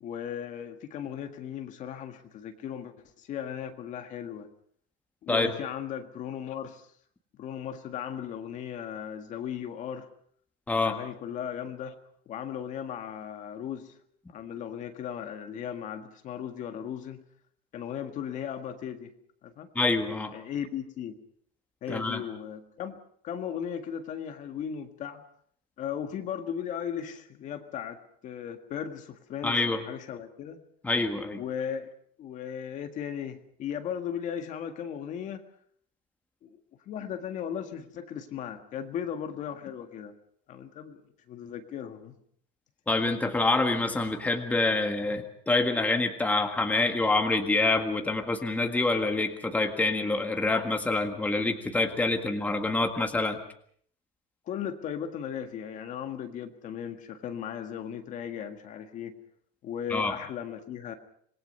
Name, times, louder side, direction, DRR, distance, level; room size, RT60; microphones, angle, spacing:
voice 1, 0.0-4.5 5.2-6.9 7.4-10.1 10.8-12.0 12.3-13.9 14.3-17.2 17.7-19.1 19.4-19.7 20.3-21.2 21.8-23.0 23.2-25.2 25.8-30.6 31.4-31.9 32.2-35.4 36.4-36.6 36.9-40.1 40.5-41.0 41.3-42.2 54.5-59.2 59.6-60.9, left 8 dB, 40° left, 6 dB, 1.7 m, -37 dB
voice 2, 19.8-20.3 21.9-22.2 29.4-29.8 30.8-31.4 42.9-53.4 59.9-60.1, left 2 dB, 10° left, 5 dB, 1.7 m, -26 dB
26.5 x 20.0 x 5.5 m, 0.62 s
cardioid pair, 155°, 20 cm